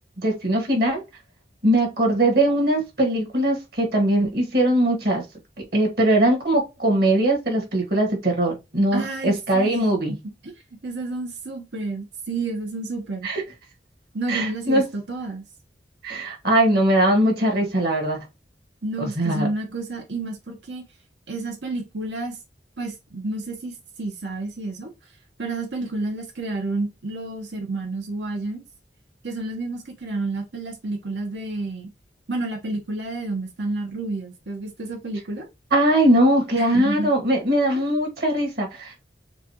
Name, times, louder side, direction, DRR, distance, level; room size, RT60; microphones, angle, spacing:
voice 1, 0.2-1.0 1.6-5.2 5.7-10.1 13.2-13.4 14.3-14.8 16.0-18.2 19.0-19.5 35.7-39.0, right 1 dB, 60° right, 1.8 m, -21 dB
voice 2, 8.9-9.8 10.4-10.5 10.8-13.3 14.1-15.4 18.8-20.8 21.3-22.4 22.8-24.9 25.4-28.6 29.2-31.9 32.3-35.5 36.5-37.1, right 2 dB, 80° right, 1.1 m, -30 dB
6.6 x 2.4 x 2.9 m
head